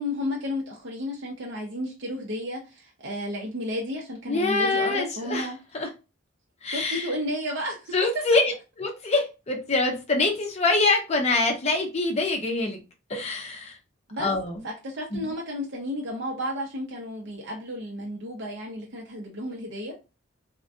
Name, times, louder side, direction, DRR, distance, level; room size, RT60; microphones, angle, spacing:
voice 1, 0.0-5.6 6.7-7.9 14.1-14.3 14.6-19.9, left 1 dB, 60° right, 0.6 m, -32 dB
voice 2, 4.3-5.9 6.6-7.1 7.9-12.8 13.1-13.8 14.2-14.6 15.1-15.3, left 3 dB, 30° left, 0.6 m, -25 dB
2.4 x 2.1 x 2.5 m
head